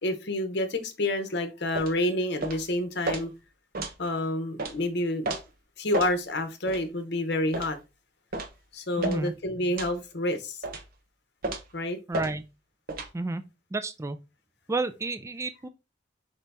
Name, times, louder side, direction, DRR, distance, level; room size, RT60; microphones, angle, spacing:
voice 1, 0.0-3.3 4.0-5.3 5.8-7.8 8.7-10.6 11.7-12.0, left 1 dB, 65° left, 0.8 m, -28 dB
sound 1, 1.8-2.0 2.4-2.6 3.1-3.2 3.7-4.0 4.6-4.7 5.2-5.4 5.9-6.1 6.7-6.8 7.5-7.7 8.3-8.5 9.0-9.2 9.8-10.0 10.6-10.9 11.4-11.7 12.1-12.3 12.9-13.1, right 2 dB, 55° right, 0.8 m, -32 dB
voice 2, 9.0-9.3 12.1-12.4 13.1-13.4 13.7-14.2 14.7-15.7, right 3 dB, 15° right, 0.3 m, -31 dB
5.0 x 2.7 x 3.4 m
head